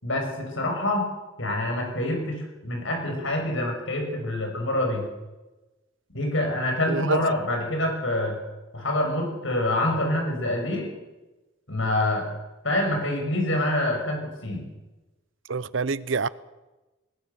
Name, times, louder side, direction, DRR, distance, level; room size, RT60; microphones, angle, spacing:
voice 1, 0.0-1.1 1.4-5.0 6.1-8.3 8.7-10.9 11.7-12.3 12.6-14.6, left 1 dB, 70° left, 6.6 m, -26 dB
voice 2, 6.9-7.2 15.5-16.3, right 4 dB, 65° right, 0.7 m, -26 dB
20.0 x 20.0 x 7.0 m
head